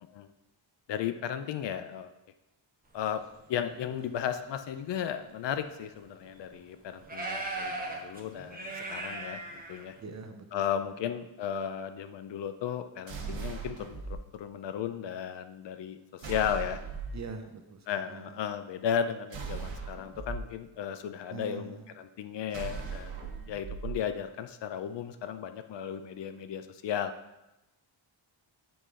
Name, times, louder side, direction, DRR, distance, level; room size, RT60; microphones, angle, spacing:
voice 1, 0.9-2.1 2.9-3.2 3.5-10.0 10.5-16.8 17.9-27.1, left 8 dB, 65° left, 10 dB, 0.5 m, -35 dB
sound 1, 3.5-4.1 4.9-5.0 5.5-5.6 6.3-6.4 7.0-10.0, right 2 dB, 20° right, 1.0 m, -38 dB
voice 2, 10.0-10.4 17.1-18.4 21.3-21.9, right 4 dB, 35° right, 6 dB, 0.6 m, -43 dB
sound 2, 13.1-14.2 16.2-17.2 19.3-20.4 22.5-24.0, right 5 dB, 70° right, 1.3 m, -38 dB
7.8 x 4.9 x 3.7 m, 0.95 s
wide cardioid pair, 150°, 47 cm